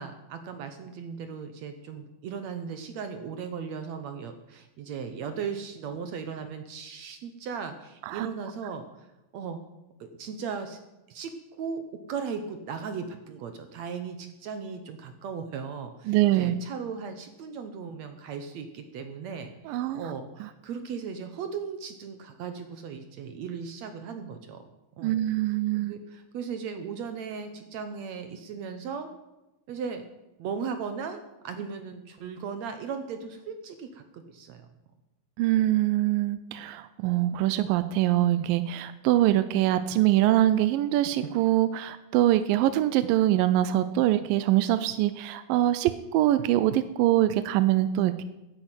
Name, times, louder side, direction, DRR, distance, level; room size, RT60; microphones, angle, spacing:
voice 1, 0.0-9.1 9.3-9.6 10.0-10.8 11.1-11.3 11.6-11.8 12.1-24.6 25.0-25.2 25.7-29.1 29.7-30.0 30.4-34.7, right 6 dB, 65° right, 8 dB, 1.9 m, -37 dB
voice 2, 16.1-16.6 19.7-20.1 20.4-20.5 25.0-25.9 35.4-48.2, right 14 dB, 85° right, 12 dB, 2.4 m, -24 dB
11.0 x 9.8 x 8.9 m, 0.98 s
omnidirectional pair, 3.9 m